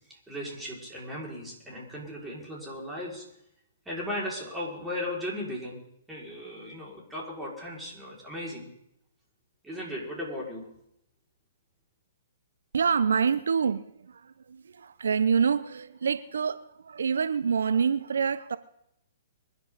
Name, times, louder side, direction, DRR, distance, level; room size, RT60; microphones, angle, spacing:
voice 1, 0.3-3.2 3.9-5.8 6.1-8.7 9.6-10.7, left 1 dB, 5° right, 5.6 m, -36 dB
voice 2, 12.7-18.6, right 6 dB, 75° right, 0.6 m, -27 dB
25.0 x 11.0 x 4.1 m
hypercardioid pair, 130°, 0 cm